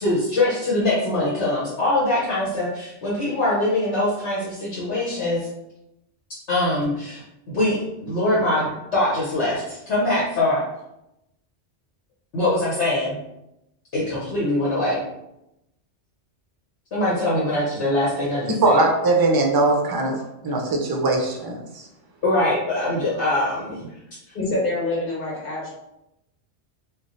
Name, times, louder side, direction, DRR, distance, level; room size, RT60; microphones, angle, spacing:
voice 1, 0.0-2.7 3.0-4.4 4.8-5.4 6.5-6.9 7.6-7.7 8.1-8.6 8.9-9.5 9.9-10.6 12.3-13.1 13.9-15.0 16.9-18.8 22.2-23.5, left 1 dB, 75° left, -8 dB, 1.3 m, -22 dB
voice 2, 18.6-20.2 20.4-21.8, right 2 dB, 30° right, 1 dB, 0.4 m, -20 dB
voice 3, 24.3-25.7, left 2 dB, 50° left, -5 dB, 1.8 m, -26 dB
3.3 x 2.4 x 3.9 m, 0.87 s
omnidirectional pair, 1.2 m